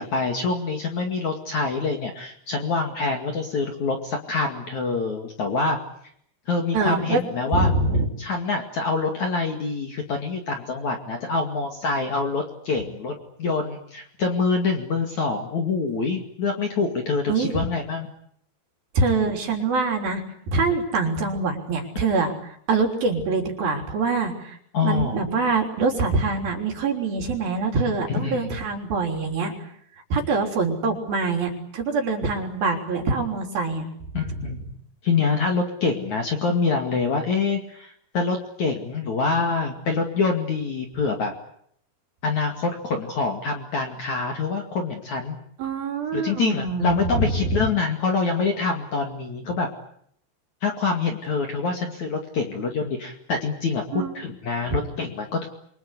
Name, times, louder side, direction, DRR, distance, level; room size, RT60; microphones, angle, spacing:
voice 1, 0.0-5.8 6.5-7.7 8.2-18.1 24.7-25.2 28.1-28.6 34.1-34.7 35.0-41.3 42.2-45.4 46.1-49.7 50.6-55.5, left 4 dB, 45° left, 3 dB, 2.9 m, -25 dB
voice 2, 6.7-7.2 7.5-8.1 17.3-17.6 18.9-20.2 20.5-29.5 30.1-33.9 34.3-34.5 45.6-47.6 53.9-54.1 54.7-54.8, right 3 dB, 50° right, 3 dB, 5.0 m, -24 dB
28.5 x 24.0 x 8.3 m, 0.68 s
omnidirectional pair, 5.6 m